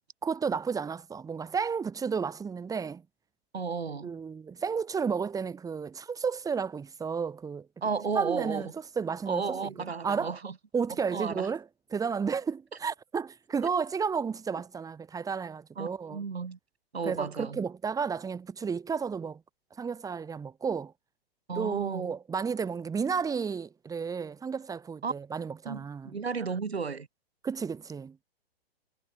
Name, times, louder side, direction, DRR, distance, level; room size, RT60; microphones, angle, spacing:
voice 1, 0.2-3.0 4.0-7.7 8.1-8.7 9.0-9.6 10.0-10.4 10.7-11.6 11.9-16.2 17.0-19.4 19.8-20.9 21.6-26.1 27.4-28.2, right 6 dB, 10° right, 1.4 m, -32 dB
voice 2, 3.5-4.1 7.8-8.7 9.3-10.5 11.1-11.5 13.6-13.7 15.8-16.6 16.9-17.6 21.5-22.1 25.0-25.1 25.6-27.1, right 5 dB, 85° right, 3.0 m, -33 dB
hypercardioid pair, 115°, 31 cm